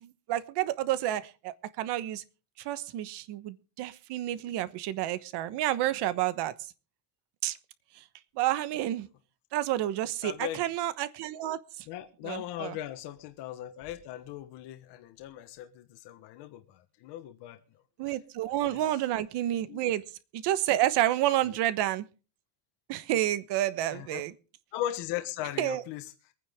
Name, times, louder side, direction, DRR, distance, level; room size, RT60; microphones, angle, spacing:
voice 1, 0.0-2.2 2.6-6.5 7.4-7.6 8.4-9.1 9.5-11.8 12.2-12.8 18.0-20.0 20.3-22.0 22.9-24.3 25.6-25.8, right 13 dB, 70° right, 1.2 m, -30 dB
voice 2, 10.2-10.6 11.9-17.6 18.1-18.2 18.6-18.9 19.7-19.8 23.9-24.2 24.7-26.1, left 12 dB, 70° left, 1.4 m, -38 dB
24.0 x 9.6 x 3.6 m
cardioid pair, 165°, 42 cm